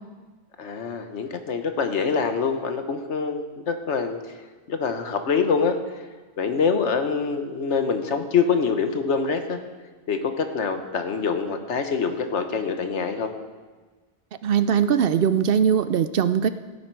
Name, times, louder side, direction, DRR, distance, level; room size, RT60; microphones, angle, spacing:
voice 1, 0.6-4.2 4.7-5.8 6.4-9.6 10.1-13.3, left 5 dB, 90° left, 7 dB, 1.4 m, -25 dB
voice 2, 14.4-16.5, right 8 dB, 65° right, 12 dB, 0.7 m, -20 dB
16.5 x 9.8 x 4.6 m, 1.3 s
omnidirectional pair, 1.1 m